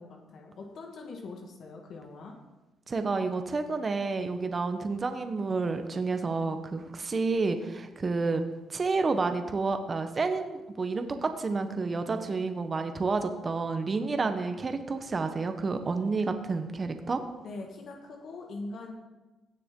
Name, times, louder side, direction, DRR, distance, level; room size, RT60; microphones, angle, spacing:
voice 1, 0.0-2.4 17.4-18.9, left 3 dB, 65° left, 1 dB, 1.5 m, -42 dB
voice 2, 2.9-8.4 8.7-17.2, right 4 dB, 35° right, 8 dB, 0.9 m, -30 dB
16.5 x 6.7 x 3.7 m, 1.1 s
cardioid pair, 90°, 0 cm